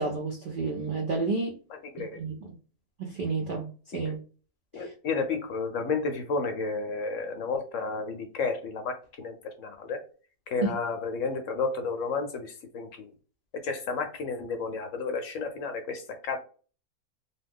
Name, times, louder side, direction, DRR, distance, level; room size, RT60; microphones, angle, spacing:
voice 1, 0.0-1.5 2.2-2.3 3.0-3.7 3.9-4.2 4.8-4.9, right 3 dB, 80° right, 1 dB, 0.4 m, -30 dB
voice 2, 1.7-2.2 4.0-4.2 4.7-10.0 10.5-13.1 13.5-16.4, left 4 dB, 65° left, 6 dB, 0.9 m, -32 dB
2.7 x 2.3 x 3.5 m, 0.38 s
omnidirectional pair, 1.6 m